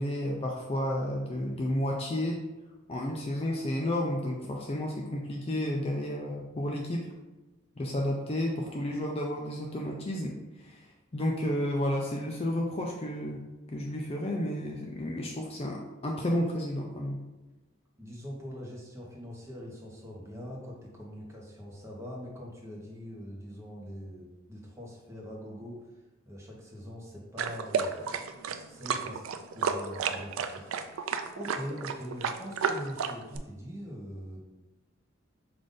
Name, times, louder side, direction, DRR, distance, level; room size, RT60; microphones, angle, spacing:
voice 1, 0.0-2.4 2.9-7.1 7.8-17.2, left 1 dB, 30° left, 0 dB, 0.3 m, -32 dB
voice 2, 18.0-25.8 26.2-29.2 29.5-34.4, equal, 15° right, -3 dB, 0.8 m, -43 dB
sound 1, 27.4-33.4, right 6 dB, 70° right, 0.3 m, -32 dB
5.0 x 2.5 x 3.8 m, 1.1 s
head